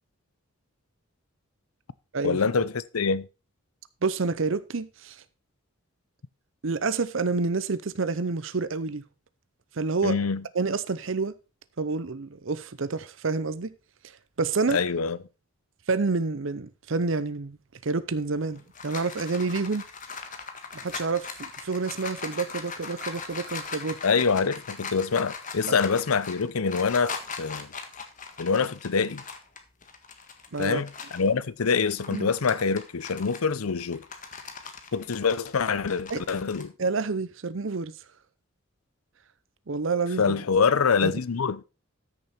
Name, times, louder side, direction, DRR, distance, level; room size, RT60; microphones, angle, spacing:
voice 1, 2.2-3.3 10.0-10.4 14.7-15.2 24.0-27.7 28.4-29.2 30.6-34.1 34.9-36.7 40.2-41.6, left 5 dB, 90° left, 0.6 m, -25 dB
voice 2, 4.0-5.2 6.6-9.0 9.8-10.2 10.5-11.4 11.8-13.7 14.4-14.8 15.9-17.6 17.8-19.8 20.7-24.0 30.5-30.8 32.1-32.3 36.1-36.2 36.8-37.9 39.7-40.4 41.0-41.1, right 4 dB, 65° right, 0.7 m, -28 dB
sound 1, 18.3-31.3 31.7-36.6, left 5 dB, 35° left, 1.6 m, -40 dB
13.5 x 6.8 x 4.3 m
head